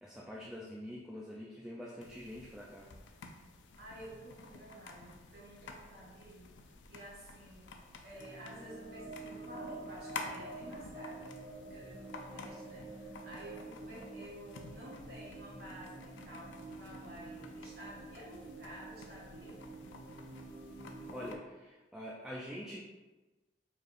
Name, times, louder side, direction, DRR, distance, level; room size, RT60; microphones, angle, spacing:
voice 1, 0.0-2.9 21.1-22.8, equal, 5° right, -4 dB, 0.3 m, -45 dB
sound 1, 2.0-21.4, left 3 dB, 80° left, 0.4 m, -51 dB
voice 2, 3.7-6.5 6.9-7.7 8.0-19.6, right 1 dB, 55° right, -5 dB, 0.7 m, -51 dB
sound 2, 8.1-21.3, right 2 dB, 70° right, 1.4 m, -49 dB
4.5 x 3.2 x 2.5 m, 1.2 s
head